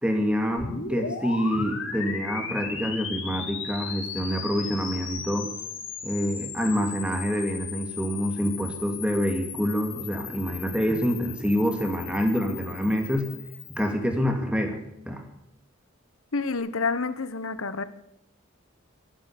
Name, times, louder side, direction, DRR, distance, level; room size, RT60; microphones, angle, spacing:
voice 1, 0.0-5.5 6.0-13.3 13.8-14.8 15.1-15.2, equal, 5° right, 4 dB, 2.3 m, -26 dB
sound 1, 0.6-13.9, left 6 dB, 65° left, 3.3 m, -37 dB
voice 2, 16.3-17.8, left 4 dB, 80° left, 14 dB, 1.1 m, -28 dB
12.0 x 12.0 x 9.9 m, 0.82 s
head